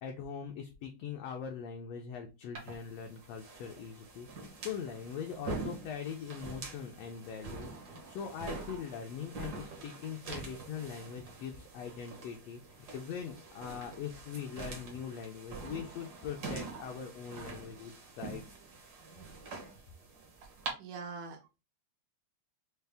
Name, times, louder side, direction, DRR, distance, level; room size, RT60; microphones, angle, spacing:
voice 1, 0.0-18.4, left 7 dB, 80° left, 3 dB, 1.5 m, -42 dB
sound 1, 2.6-20.7, right 4 dB, 65° right, 1.0 m, -45 dB
voice 2, 20.8-21.6, right 4 dB, 85° right, 1 dB, 2.4 m, -44 dB
5.4 x 2.0 x 3.3 m, 0.28 s
omnidirectional pair, 3.4 m